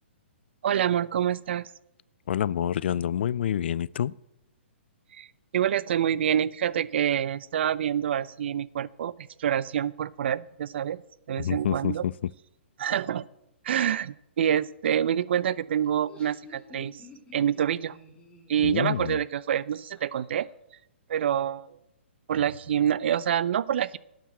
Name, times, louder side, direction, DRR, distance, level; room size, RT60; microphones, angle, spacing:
voice 1, 0.6-1.7 5.1-5.3 5.5-11.0 11.3-12.0 12.8-13.3 13.6-17.0 17.3-18.0 18.5-20.5 21.1-21.8 22.3-24.0, right 9 dB, 60° right, 0.5 m, -27 dB
voice 2, 2.3-4.1 11.4-12.1 18.6-19.2, left 10 dB, 60° left, 0.4 m, -27 dB
Laughter, 15.8-20.4, left 2 dB, 15° left, 3.2 m, -51 dB
9.0 x 7.4 x 8.3 m
hypercardioid pair, 130°, 7 cm